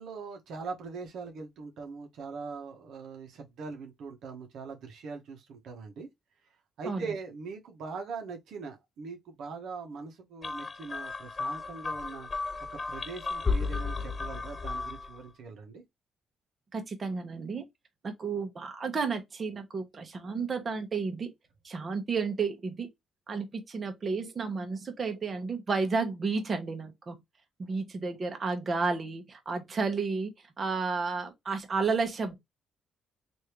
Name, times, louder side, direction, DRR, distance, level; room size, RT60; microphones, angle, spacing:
voice 1, 0.0-6.1 6.8-12.3 12.7-15.8, right 4 dB, 75° right, 0.9 m, -41 dB
sound 1, 10.4-15.2, left 4 dB, 35° left, 0.4 m, -34 dB
voice 2, 16.7-17.6 18.0-21.3 21.6-22.9 23.3-27.2 27.6-30.3 30.6-32.4, right 4 dB, 40° right, 1.0 m, -32 dB
3.2 x 2.6 x 2.9 m
cardioid pair, 90°, 0 cm